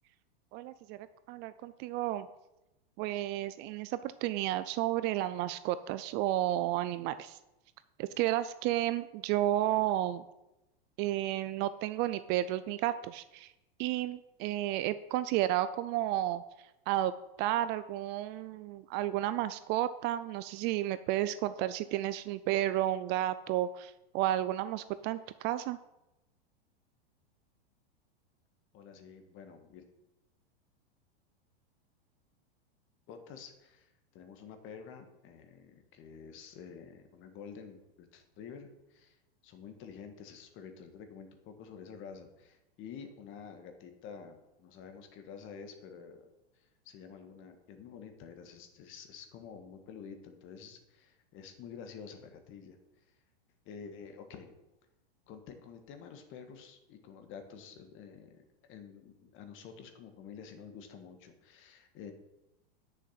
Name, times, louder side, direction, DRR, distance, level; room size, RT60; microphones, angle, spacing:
voice 1, 0.5-2.3 3.0-7.4 8.0-10.2 11.0-13.5 13.8-16.4 16.9-17.1 17.4-25.8, right 14 dB, 35° right, 14 dB, 0.4 m, -32 dB
voice 2, 28.7-29.8 33.1-39.2 39.4-46.3 46.5-52.8 53.1-53.2 53.6-54.5 55.3-62.1, left 6 dB, 40° left, 7 dB, 1.7 m, -49 dB
9.8 x 6.6 x 5.8 m, 0.96 s
hypercardioid pair, 120°, 31 cm